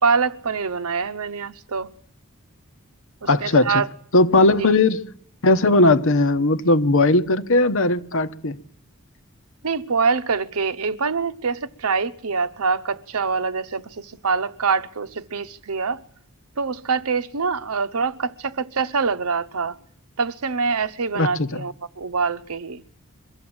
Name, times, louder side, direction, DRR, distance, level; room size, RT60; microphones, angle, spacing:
voice 1, 0.0-1.9 3.2-3.9 9.6-16.0 16.6-19.8 20.2-22.8, right 5 dB, 85° right, 0.9 m, -25 dB
voice 2, 3.2-3.8 4.1-5.0 5.4-8.6 21.1-21.6, left 2 dB, 65° left, 1.1 m, -18 dB
23.5 x 13.5 x 8.8 m
head